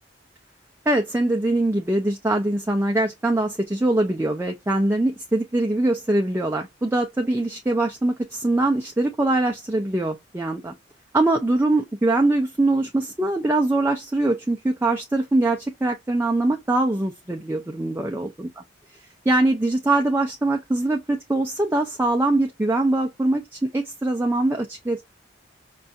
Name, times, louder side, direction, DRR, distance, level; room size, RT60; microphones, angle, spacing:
voice 1, 0.9-10.7 11.1-18.6 19.3-25.0, right 2 dB, 10° right, 0.4 m, -22 dB
5.2 x 2.3 x 2.6 m
head